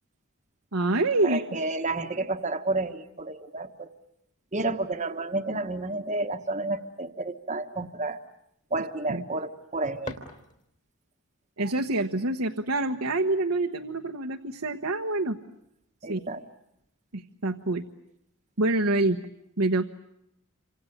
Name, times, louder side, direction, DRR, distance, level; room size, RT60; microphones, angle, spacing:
voice 1, 0.7-1.4 9.1-9.2 11.6-15.4 16.1-16.2 17.1-17.8 18.6-19.2 19.6-19.8, right 2 dB, 70° right, 3 dB, 1.2 m, -26 dB
voice 2, 1.2-3.9 4.5-8.2 8.7-10.2 16.0-16.4, right 2 dB, 35° right, 7 dB, 1.3 m, -30 dB
sound 1, 9.5-11.0, left 2 dB, 35° left, 3.0 m, -43 dB
28.5 x 26.5 x 7.9 m, 0.78 s
head